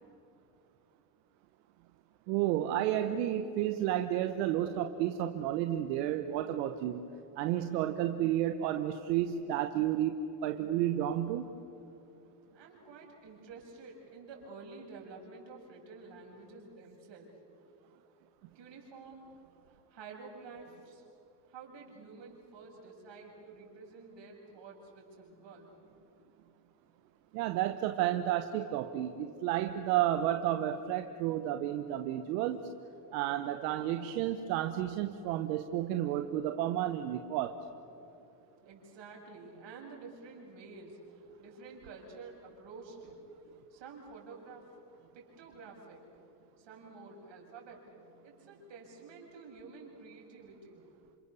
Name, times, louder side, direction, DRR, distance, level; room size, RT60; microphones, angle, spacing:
voice 1, 2.3-7.0 7.4-10.1 10.4-11.5 27.3-32.7 33.1-37.6, right 12 dB, 85° right, 7 dB, 1.2 m, -31 dB
voice 2, 12.5-17.3 18.5-19.3 19.7-21.0 21.5-25.7 38.6-41.0 41.4-43.2 43.7-44.6 45.1-46.0 46.6-48.0 48.2-50.9, right 4 dB, 60° right, -1 dB, 7.4 m, -50 dB
29.0 x 26.5 x 7.0 m, 2.8 s
supercardioid pair, 75°, 50 cm